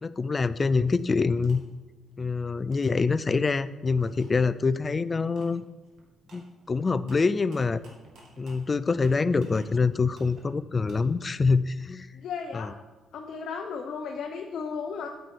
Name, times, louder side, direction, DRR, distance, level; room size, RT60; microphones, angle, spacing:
voice 1, 0.0-1.6 2.2-5.6 6.3-7.8 8.4-12.1 12.5-12.7, left 4 dB, 30° left, 15 dB, 0.4 m, -25 dB
sound 1, 1.0-1.6 2.1-3.6 4.0-4.2 4.6-4.9 5.4-5.5 5.8-9.7 10.1-11.0, right 2 dB, 70° right, 2.4 m, -54 dB
voice 2, 12.1-12.7 13.1-15.1, left 5 dB, 70° left, 2 dB, 0.8 m, -34 dB
9.2 x 7.8 x 4.4 m, 1.2 s
cardioid pair, 90°, 0 cm